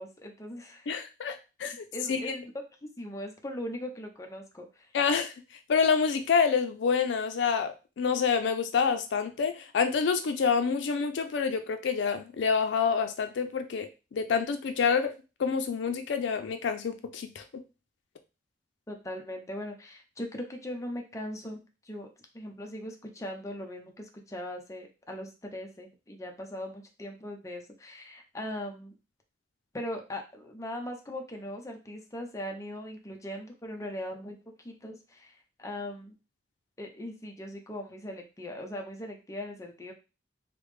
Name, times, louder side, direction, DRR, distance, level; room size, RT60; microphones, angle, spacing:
voice 1, 0.0-0.9 1.9-2.5 3.0-4.9 18.9-22.1 22.3-28.9 29.7-34.4 34.6-36.2 36.8-39.9, left 1 dB, 15° left, 3 dB, 0.5 m, -39 dB
voice 2, 0.9-1.7 2.1-2.3 4.9-5.3 5.7-15.1 15.4-17.4, left 6 dB, 80° left, 8 dB, 0.4 m, -27 dB
3.3 x 2.0 x 3.2 m, 0.30 s
head